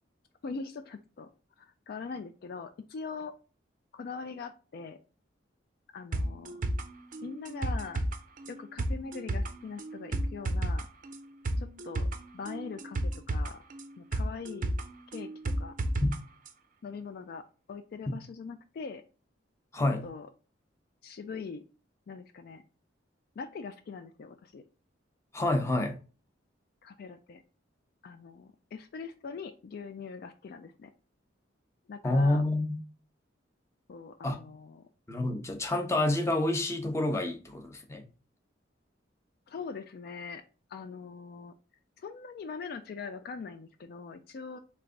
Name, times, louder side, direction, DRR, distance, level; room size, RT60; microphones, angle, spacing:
voice 1, 0.4-1.3 1.6-3.3 3.9-5.0 5.9-6.6 7.2-8.0 8.5-10.9 11.6-12.1 12.3-13.6 14.0-14.7 15.1-15.3 15.6-15.8 16.8-19.0 20.0-20.3 21.0-21.6 22.1-22.6 23.4-24.6 26.8-27.4 28.0-30.9 31.9-32.4 33.9-34.9 39.5-40.4 40.7-41.5 42.0-44.6, left 5 dB, 55° left, 0.3 m, -42 dB
sound 1, 6.1-16.2 16.5-16.6, right 1 dB, 45° right, 0.5 m, -33 dB
voice 2, 19.7-20.1 25.3-26.0 32.0-32.8 34.2-34.5 35.1-38.1, left 2 dB, 15° left, 0.7 m, -28 dB
3.4 x 3.2 x 3.7 m
head